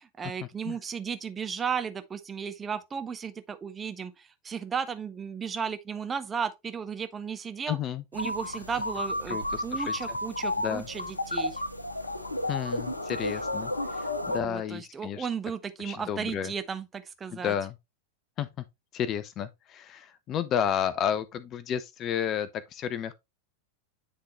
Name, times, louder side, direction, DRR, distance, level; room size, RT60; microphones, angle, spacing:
voice 1, 0.0-7.8 8.1-11.6 14.2-17.5, right 6 dB, 20° right, 0.8 m, -35 dB
voice 2, 7.7-8.0 9.3-10.2 10.6-10.9 12.5-15.3 15.8-16.5 17.3-17.7 18.4-18.6 18.9-23.1, left 9 dB, 30° left, 0.5 m, -32 dB
sound 1, 8.1-14.4, left 1 dB, 85° left, 0.8 m, -32 dB
9.8 x 3.7 x 3.0 m
figure-of-eight pair, 90°, 0 cm